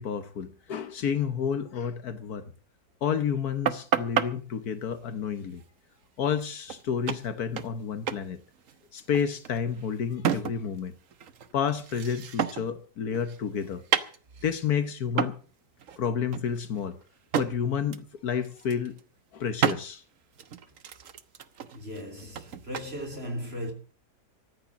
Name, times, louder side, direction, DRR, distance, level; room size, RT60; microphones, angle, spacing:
voice 1, 0.0-2.5 3.0-5.6 6.2-8.4 8.9-10.9 11.5-13.8 14.4-15.4 16.0-17.0 17.4-19.0 19.3-20.0, left 7 dB, 70° left, 1.5 m, -30 dB
sound 1, 3.7-4.3 6.4-6.5 6.7-6.8 7.1-7.8 8.1-8.3 8.5-10.8 11.1-12.8 13.1-14.6 15.2-15.4 15.8-16.0 16.3-17.5 17.9-18.1 18.4-19.0 19.6-19.8 20.4-22.9, right 8 dB, 55° right, 1.2 m, -31 dB
voice 2, 21.7-23.7, equal, 40° right, 3.2 m, -37 dB
14.5 x 10.0 x 7.3 m
omnidirectional pair, 1.7 m